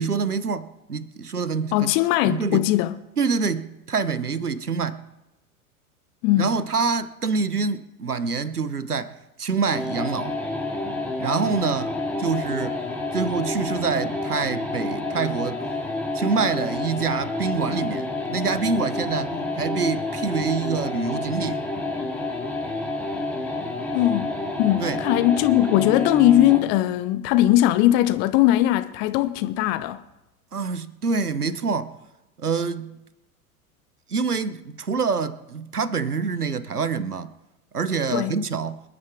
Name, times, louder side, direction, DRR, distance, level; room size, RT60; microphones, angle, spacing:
voice 1, 0.0-1.9 2.2-2.7 3.2-5.1 6.4-10.4 11.2-11.9 12.2-12.8 13.1-15.6 16.1-21.6 24.8-25.0 30.5-31.9 32.4-33.0 34.1-37.3 37.7-38.8, right 5 dB, 85° right, 0.9 m, -26 dB
voice 2, 1.7-3.0 6.2-6.5 23.9-24.3 24.6-30.0 38.1-38.3, left 14 dB, 25° left, 0.5 m, -20 dB
sound 1, 9.7-26.7, left 2 dB, 5° left, 2.6 m, -29 dB
27.0 x 9.6 x 3.5 m
figure-of-eight pair, 90°, 44 cm